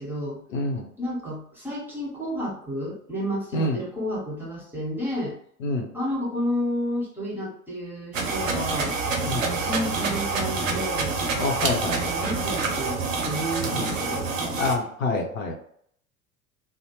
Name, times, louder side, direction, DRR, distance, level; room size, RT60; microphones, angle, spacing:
voice 1, 0.0-0.4 1.0-5.3 5.9-11.2 11.9-14.3, equal, 5° right, -5 dB, 1.2 m, -31 dB
voice 2, 0.5-0.9 3.5-3.8 5.6-5.9 9.3-9.5 11.4-12.2 13.7-13.9 14.6-15.5, left 2 dB, 80° left, 1 dB, 0.7 m, -27 dB
sound 1, 8.1-14.8, right 4 dB, 75° right, 0.6 m, -27 dB
2.6 x 2.0 x 2.9 m, 0.64 s
figure-of-eight pair, 70°, 39 cm